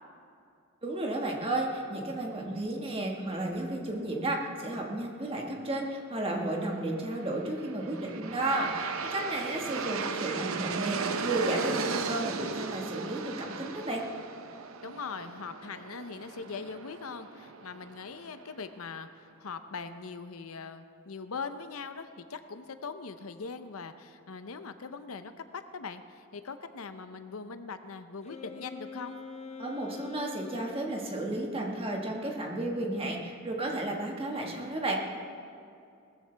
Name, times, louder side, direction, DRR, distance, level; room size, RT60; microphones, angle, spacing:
voice 1, 0.8-14.0 29.6-35.0, right 2 dB, 25° right, 0 dB, 1.6 m, -33 dB
Aircraft, 7.4-18.4, right 5 dB, 75° right, 0.7 m, -36 dB
voice 2, 14.8-29.2, left 5 dB, 85° left, 10 dB, 0.7 m, -41 dB
Wind instrument woodwind instrument, 28.2-31.1, left 5 dB, 30° left, 0.7 m, -44 dB
19.0 x 14.0 x 3.4 m, 2.5 s
head